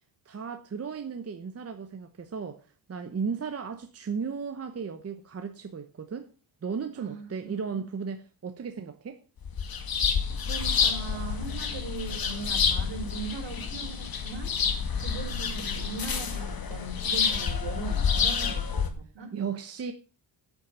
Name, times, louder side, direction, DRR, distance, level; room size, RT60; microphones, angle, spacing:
voice 1, 0.2-6.3 6.6-9.2 18.4-18.6 19.3-19.9, right 6 dB, 30° right, 1.0 m, -35 dB
voice 2, 7.0-7.9 10.5-14.5 15.0-19.3, right 4 dB, 60° right, 4.6 m, -39 dB
sound 1, 9.4-18.9, left 6 dB, 45° left, 2.1 m, -28 dB
8.9 x 8.6 x 6.8 m
cardioid pair, 150°, 48 cm